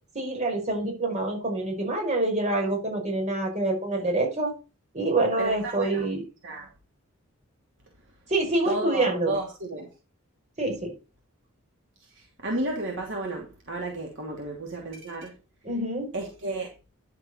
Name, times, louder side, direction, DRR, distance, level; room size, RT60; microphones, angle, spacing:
voice 1, 0.1-4.5 4.9-6.2 8.3-9.3 10.6-10.9 15.6-16.1, right 2 dB, 35° right, 5.5 m, -26 dB
voice 2, 5.4-6.1 6.4-6.7 8.6-9.9 12.1-15.3 16.1-16.7, right 2 dB, 60° right, 2.8 m, -32 dB
11.0 x 7.6 x 4.5 m
head